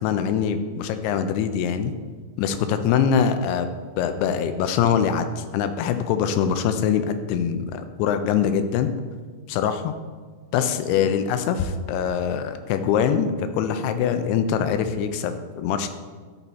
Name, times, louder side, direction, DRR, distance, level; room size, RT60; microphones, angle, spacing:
voice 1, 0.0-1.9 2.4-3.7 4.0-8.9 9.5-9.9 10.5-15.9, left 7 dB, 80° left, 9 dB, 2.5 m, -23 dB
11.0 x 4.4 x 4.1 m, 1.5 s
omnidirectional pair, 4.9 m